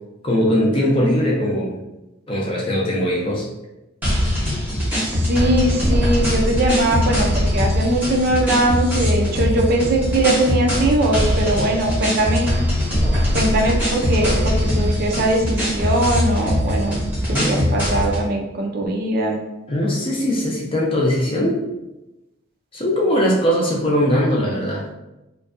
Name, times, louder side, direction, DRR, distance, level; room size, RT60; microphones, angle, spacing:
voice 1, 0.2-1.8 2.3-3.5 17.3-17.8 19.7-21.6 22.7-24.9, equal, 25° left, -2 dB, 0.4 m, -20 dB
sound 1, 4.0-18.2, left 1 dB, 10° right, 0.8 m, -21 dB
voice 2, 5.3-12.5 13.3-17.0 17.3-19.4, right 1 dB, 45° right, 1 dB, 0.4 m, -20 dB
2.5 x 2.2 x 2.4 m, 0.98 s
head